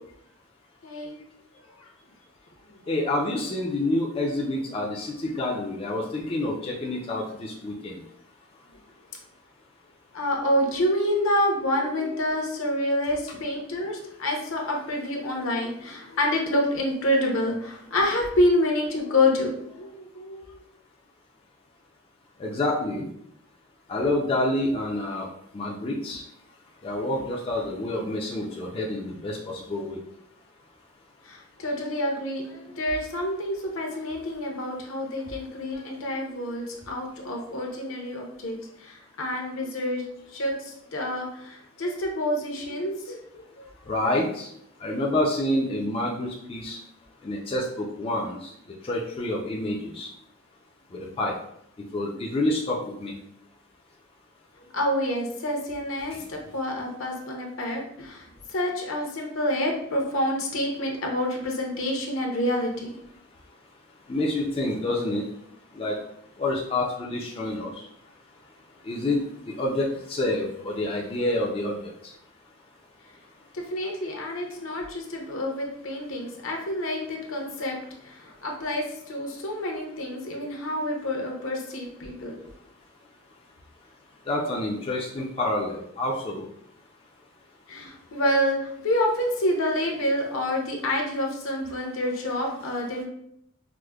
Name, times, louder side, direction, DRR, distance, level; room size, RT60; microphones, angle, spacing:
voice 1, 0.8-1.2 1.8-1.9 2.7-2.8 10.1-20.6 31.2-40.0 40.3-43.2 43.6-43.7 54.7-62.9 73.5-77.8 78.0-82.4 87.7-93.0, left 1 dB, 70° left, 1 dB, 0.7 m, -28 dB
voice 2, 2.9-8.0 22.4-23.1 23.9-25.3 25.5-26.2 26.8-30.0 43.9-44.5 44.8-46.8 47.2-48.5 48.8-50.1 50.9-51.3 51.9-53.1 56.1-56.2 64.1-65.2 65.7-65.9 66.4-67.9 68.8-69.2 69.5-71.8 72.0-72.1 84.3-86.4, left 1 dB, 25° left, -3 dB, 0.4 m, -28 dB
4.8 x 2.0 x 2.2 m, 0.73 s
head